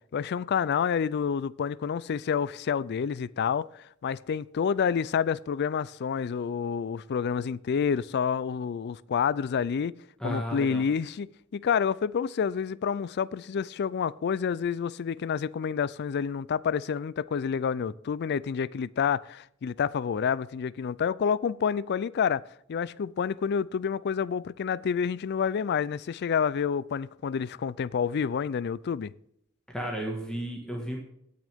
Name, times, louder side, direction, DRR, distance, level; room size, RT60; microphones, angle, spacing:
voice 1, 0.1-10.0 10.2-22.4 22.7-29.1, left 7 dB, 50° left, 0.3 m, -28 dB
voice 2, 10.2-10.8 29.7-31.0, right 1 dB, 5° left, 1.5 m, -33 dB
17.0 x 6.3 x 3.5 m
head